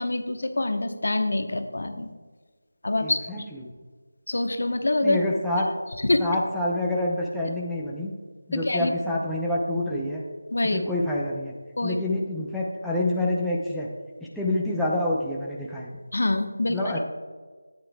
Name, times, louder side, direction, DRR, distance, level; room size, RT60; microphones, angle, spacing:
voice 1, 0.0-2.1 2.8-3.2 4.3-5.2 6.1-6.2 8.5-8.9 10.5-10.8 11.8-12.0 16.1-17.0, left 2 dB, 65° left, 7 dB, 1.0 m, -25 dB
voice 2, 3.0-3.7 5.0-5.7 6.2-8.1 8.5-10.2 10.6-11.5 11.8-13.9 14.3-16.0 16.7-17.0, left 1 dB, ahead, -7 dB, 0.7 m, -27 dB
13.5 x 9.4 x 2.3 m, 1.4 s
figure-of-eight pair, 170°, 0 cm